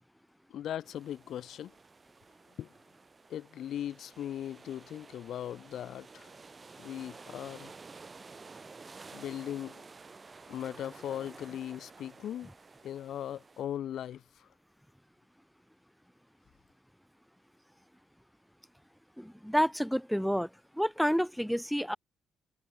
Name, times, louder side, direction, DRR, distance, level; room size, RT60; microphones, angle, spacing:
voice 1, 0.5-1.7 2.6-2.7 3.3-6.3 6.8-7.7 9.1-9.8 10.5-12.5 12.8-14.5, left 10 dB, 70° left, 1.8 m, -39 dB
sound 1, 0.8-13.6, right 4 dB, 30° right, 8.0 m, -52 dB
voice 2, 19.2-20.5 20.8-22.0, equal, ahead, 0.9 m, -29 dB
cardioid pair, 90°, 0 cm